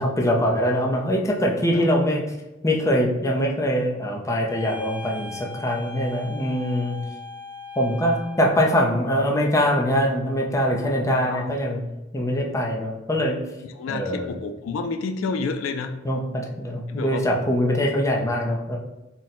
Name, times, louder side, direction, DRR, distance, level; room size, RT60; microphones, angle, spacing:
voice 1, 0.0-2.4 2.6-7.0 7.8-11.8 12.1-13.4 13.9-14.4 16.0-18.8, equal, 15° left, -1 dB, 0.5 m, -23 dB
sound 1, 4.5-8.7, left 1 dB, 45° left, 1.0 m, -39 dB
voice 2, 13.8-16.0 16.9-17.2, left 4 dB, 80° left, 7 dB, 0.3 m, -29 dB
3.8 x 2.1 x 4.2 m, 0.99 s
head